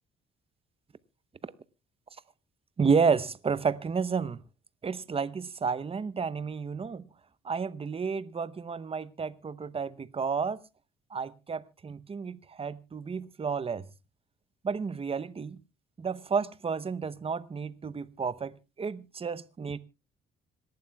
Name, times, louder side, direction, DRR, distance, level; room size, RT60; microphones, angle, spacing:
voice 1, 2.8-4.4 4.8-7.0 7.4-10.6 11.1-13.9 14.6-15.6 16.0-18.5 18.8-19.8, right 5 dB, 30° right, 0.8 m, -31 dB
26.0 x 11.5 x 2.3 m
cardioid pair, 90°, 20 cm